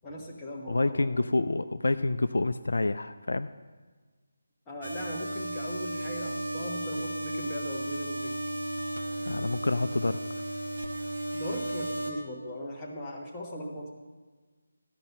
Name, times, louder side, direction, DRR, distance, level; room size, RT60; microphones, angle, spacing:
voice 1, 0.0-1.1 4.7-8.4 11.3-13.9, equal, 15° left, -3 dB, 1.3 m, -39 dB
voice 2, 0.7-3.5 9.3-10.2, left 2 dB, 65° left, 11 dB, 0.3 m, -28 dB
sound 1, 4.8-12.1, right 1 dB, 70° right, 1.3 m, -34 dB
13.5 x 5.4 x 7.2 m, 1.4 s
figure-of-eight pair, 155°, 0 cm